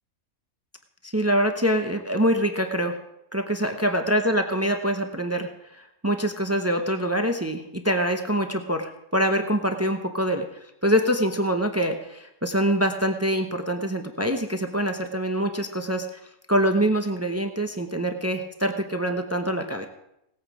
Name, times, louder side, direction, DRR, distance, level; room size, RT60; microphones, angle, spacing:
voice 1, 1.0-3.0 3.3-16.2 16.5-19.8, equal, 25° right, 5 dB, 0.3 m, -25 dB
18.0 x 8.7 x 4.8 m, 0.84 s
omnidirectional pair, 1.7 m